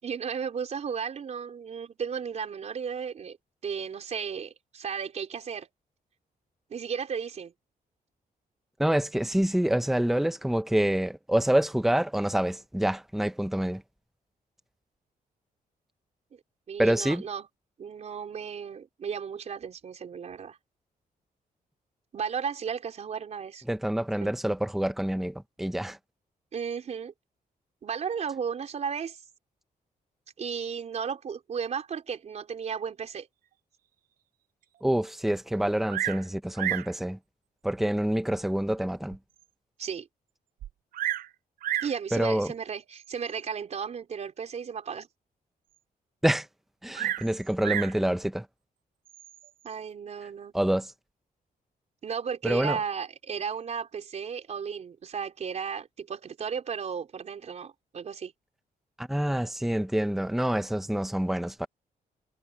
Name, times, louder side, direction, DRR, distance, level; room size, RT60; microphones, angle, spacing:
voice 1, 0.0-3.4 3.6-5.7 6.7-7.5 16.3-16.4 16.7-17.5 17.8-20.6 22.1-23.6 24.2-24.3 26.5-27.1 27.8-29.2 30.4-33.3 39.8-40.1 41.8-45.1 49.6-50.5 52.0-58.3, right 6 dB, 50° right, 4.2 m, -34 dB
voice 2, 8.8-13.8 16.8-17.2 23.7-26.0 34.8-37.2 37.6-39.2 42.1-42.5 46.2-46.5 46.8-48.5 50.5-50.9 52.4-52.8 59.0-61.7, right 1 dB, ahead, 0.9 m, -27 dB
Bird vocalization bird call bird song, 35.9-36.3 36.6-36.9 37.8-37.9 38.5-38.6 39.1-39.2 39.4-39.5 40.6-41.3 41.6-42.0 43.0-43.3 46.9-48.0 49.1-49.5, right 12 dB, 70° right, 0.4 m, -31 dB
wide cardioid pair, 160°, 15 cm